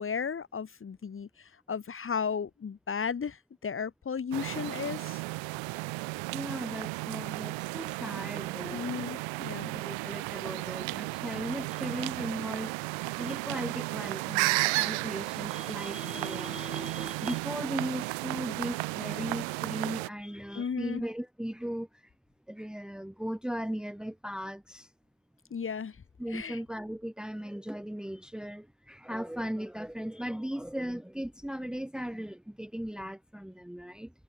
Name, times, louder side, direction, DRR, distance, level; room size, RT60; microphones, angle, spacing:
voice 1, 0.0-5.2 8.7-9.7 20.5-21.0 25.5-26.0 26.3-26.6, left 6 dB, 30° left, 3.9 m, -34 dB
sound 1, 4.3-20.1, right 26 dB, 85° right, 0.8 m, -34 dB
voice 2, 6.3-9.2 9.7-12.7 13.2-21.9 22.5-24.9 26.2-34.1, equal, ahead, 2.2 m, -37 dB
cardioid pair, 135°, 45 cm